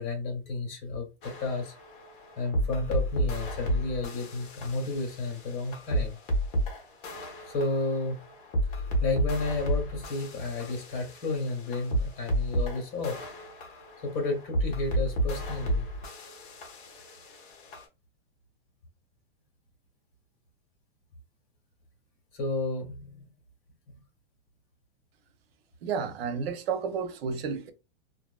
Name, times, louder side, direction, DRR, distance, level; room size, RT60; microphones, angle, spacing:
voice 1, 0.0-1.7 2.4-6.1 7.5-8.2 8.7-13.2 14.0-15.9 22.3-23.2, left 3 dB, 45° left, 1.5 m, -32 dB
sound 1, 1.2-17.8, right 1 dB, 60° left, 1.0 m, -32 dB
voice 2, 25.8-27.7, right 6 dB, 80° right, 0.7 m, -31 dB
2.5 x 2.5 x 2.2 m
supercardioid pair, 150°, 30 cm